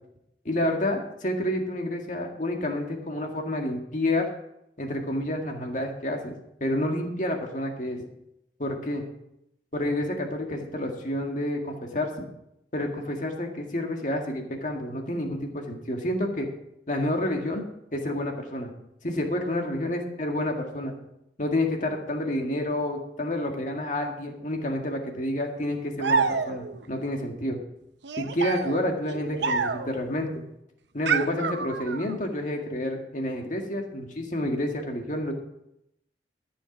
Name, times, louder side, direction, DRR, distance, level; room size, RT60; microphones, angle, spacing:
voice 1, 0.5-4.3 4.8-6.3 6.6-8.0 8.6-9.0 9.7-12.3 12.7-16.5 16.9-17.6 17.9-18.7 19.0-21.0 21.4-27.6 28.2-30.4 30.9-35.3, left 1 dB, 45° left, 2 dB, 1.9 m, -29 dB
sound 1, 26.0-26.8 28.0-30.0 31.1-32.2, right 5 dB, 90° right, 0.7 m, -28 dB
14.0 x 7.0 x 6.0 m, 0.82 s
head